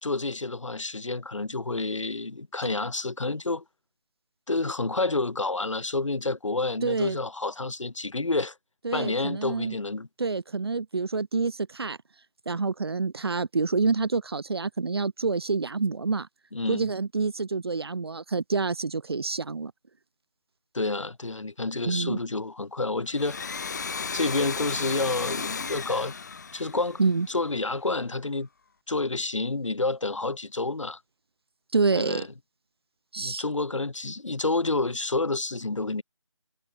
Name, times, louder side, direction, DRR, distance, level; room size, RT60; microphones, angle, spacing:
voice 1, 0.0-3.6 4.5-8.6 8.9-10.1 16.5-16.9 20.7-23.4 24.1-26.1 26.5-27.0 27.3-28.5 28.9-31.0 31.9-32.3 33.2-36.0, left 3 dB, 80° left, 5.2 m, -29 dB
voice 2, 6.8-7.2 8.8-9.7 10.2-12.0 12.5-16.3 16.7-19.7 21.8-22.2 27.0-27.3 31.7-32.2 33.1-33.4, right 4 dB, 55° right, 1.3 m, -27 dB
Domestic sounds home sounds, 23.1-27.6, left 5 dB, 35° left, 5.0 m, -34 dB
figure-of-eight pair, 175°, 16 cm